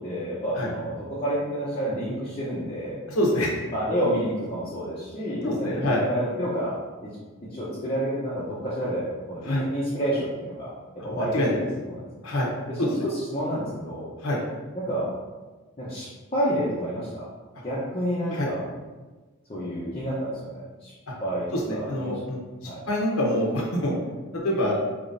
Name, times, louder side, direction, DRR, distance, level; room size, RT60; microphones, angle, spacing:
voice 1, 0.0-3.0 3.7-6.8 7.0-7.2 7.4-10.7 11.0-12.2 12.7-14.1 14.7-15.1 15.8-17.3 17.6-18.6 19.5-20.9 21.2-22.2 22.6-22.8, equal, 25° left, -9 dB, 0.8 m, -29 dB
voice 2, 3.1-3.6 5.4-6.0 9.4-9.6 11.1-11.6 12.2-12.5 12.8-13.0 14.2-14.4 18.3-18.5 21.1-21.2 21.5-22.4 22.9-23.9 24.3-24.8, left 1 dB, 80° left, -3 dB, 0.9 m, -25 dB
5.0 x 3.0 x 2.6 m, 1.3 s
head